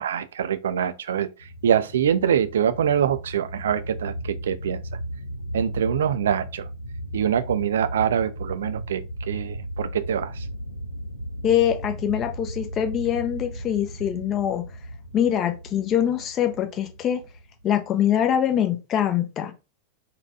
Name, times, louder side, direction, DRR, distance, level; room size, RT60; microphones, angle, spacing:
voice 1, 0.0-4.8 5.5-6.7 7.1-10.5, right 9 dB, 65° right, 0.3 m, -24 dB
sound 1, 1.4-18.4, equal, 90° left, 0.5 m, -36 dB
voice 2, 11.4-14.6 15.1-17.2 17.6-19.5, left 10 dB, 30° left, 0.6 m, -23 dB
4.1 x 2.2 x 2.7 m
figure-of-eight pair, 90°, 0 cm